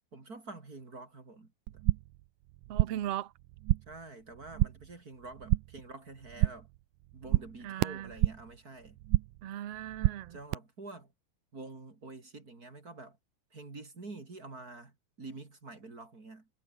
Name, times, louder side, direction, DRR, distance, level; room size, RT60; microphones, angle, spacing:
voice 1, 0.1-1.8 3.9-6.7 7.1-9.0 10.3-11.1 11.5-13.2 13.5-16.5, right 3 dB, 25° right, 3.2 m, -47 dB
sound 1, 1.7-2.2 2.5-3.1 3.4-4.0 4.3-4.9 5.2-5.9 6.2-6.8 7.0-8.6 8.8-9.5 9.7-10.5, right 19 dB, 80° right, 1.9 m, -30 dB
voice 2, 2.7-3.3 7.6-8.2 9.4-10.4, right 12 dB, 55° right, 1.9 m, -38 dB
omnidirectional pair, 4.1 m